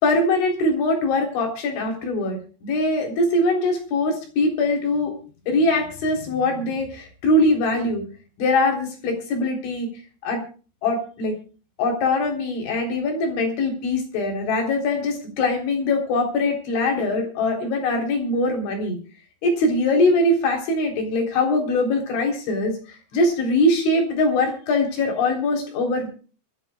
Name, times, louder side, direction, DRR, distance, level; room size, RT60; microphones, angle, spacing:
voice 1, 0.0-5.1 5.5-8.0 8.4-9.9 10.2-10.4 10.8-11.4 11.8-19.0 19.4-22.8 23.1-26.1, left 2 dB, 80° left, 2 dB, 6.1 m, -22 dB
25.0 x 14.0 x 2.4 m, 0.37 s
omnidirectional pair, 5.3 m